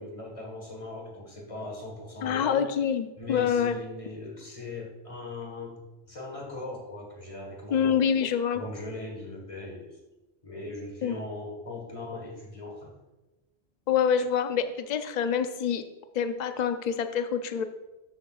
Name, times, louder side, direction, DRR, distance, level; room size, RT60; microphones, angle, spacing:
voice 1, 0.0-2.6 3.2-8.0 8.5-10.0 10.4-12.9, left 2 dB, 30° left, 0 dB, 1.7 m, -39 dB
voice 2, 2.2-3.8 7.7-8.6 11.0-11.2 13.9-15.8 16.1-17.6, left 7 dB, 50° left, 9 dB, 0.6 m, -26 dB
12.5 x 8.3 x 2.4 m, 1.0 s
omnidirectional pair, 1.1 m